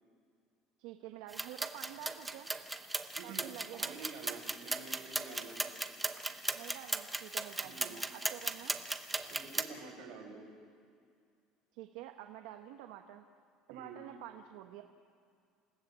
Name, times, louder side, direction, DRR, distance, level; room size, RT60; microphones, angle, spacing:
voice 1, 0.8-2.5 3.2-4.0 6.5-8.8 11.7-13.3 13.7-14.8, right 13 dB, 70° right, 5 dB, 1.1 m, -48 dB
sound 1, 1.3-9.6, right 2 dB, 5° right, 0.8 m, -38 dB
voice 2, 3.1-3.5 3.8-5.6 7.6-8.0 9.3-10.5 13.7-14.0, right 4 dB, 55° right, 1 dB, 4.9 m, -48 dB
28.0 x 16.0 x 7.5 m, 2.3 s
cardioid pair, 175°, 0 cm